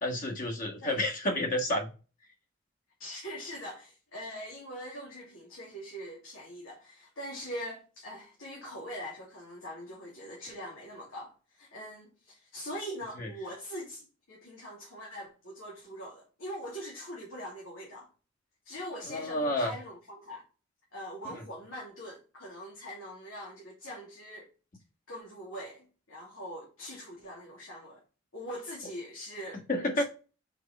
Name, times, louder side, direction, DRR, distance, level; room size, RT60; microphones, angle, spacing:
voice 1, 0.0-1.9 13.2-13.3 19.1-19.7 21.2-21.4 29.7-30.0, left 1 dB, 45° left, 1.7 m, -30 dB
voice 2, 3.0-18.1 18.6-20.4 20.9-24.5 25.1-28.0 28.3-29.6 29.9-30.0, equal, 90° left, 2.7 m, -42 dB
6.6 x 4.6 x 4.3 m
head